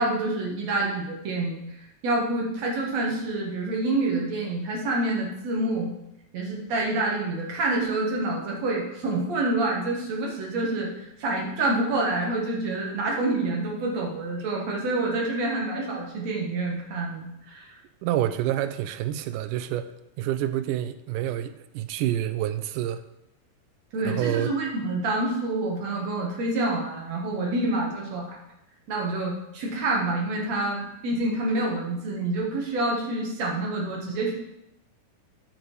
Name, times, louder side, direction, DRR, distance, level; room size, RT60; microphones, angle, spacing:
voice 1, 0.0-1.6 2.0-5.9 6.3-17.8 23.9-28.4 28.9-34.3, right 2 dB, 55° right, -2 dB, 2.7 m, -27 dB
voice 2, 18.0-19.9 20.2-23.0 24.1-24.5, right 12 dB, 80° right, 11 dB, 2.0 m, -28 dB
8.9 x 6.8 x 4.6 m, 0.85 s
omnidirectional pair, 3.9 m